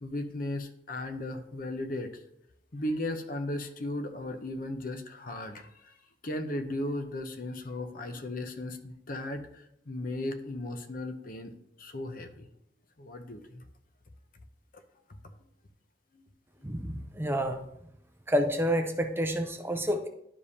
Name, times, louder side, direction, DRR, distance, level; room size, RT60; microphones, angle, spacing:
voice 1, 0.0-2.2 2.7-6.0 6.2-11.5 11.8-12.5 13.0-13.6 16.1-16.2 16.6-16.7, left 1 dB, 50° left, 7 dB, 0.7 m, -36 dB
voice 2, 16.6-17.7 18.3-20.1, equal, 15° right, 5 dB, 0.5 m, -29 dB
11.0 x 5.1 x 2.8 m, 0.76 s
head